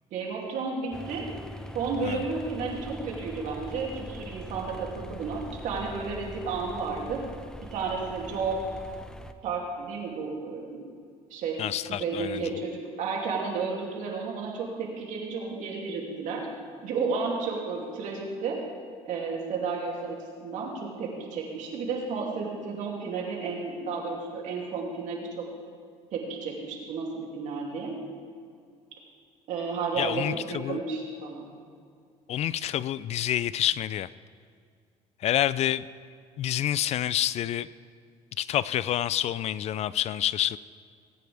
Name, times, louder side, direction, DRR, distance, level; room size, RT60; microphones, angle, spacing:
voice 1, 0.1-1.3 1.7-7.2 7.7-8.7 9.4-10.9 11.3-16.5 16.8-18.6 19.1-25.5 26.1-28.0 29.5-31.5, right 4 dB, 75° right, -1 dB, 2.7 m, -32 dB
sound 1, 0.9-9.3, equal, 5° left, 0.7 m, -42 dB
voice 2, 11.6-12.4 30.0-30.8 32.3-34.1 35.2-35.9 36.4-37.7 38.4-40.6, left 12 dB, 55° left, 18 dB, 0.4 m, -28 dB
19.0 x 9.4 x 3.4 m, 2.2 s
cardioid pair, 90°, 13 cm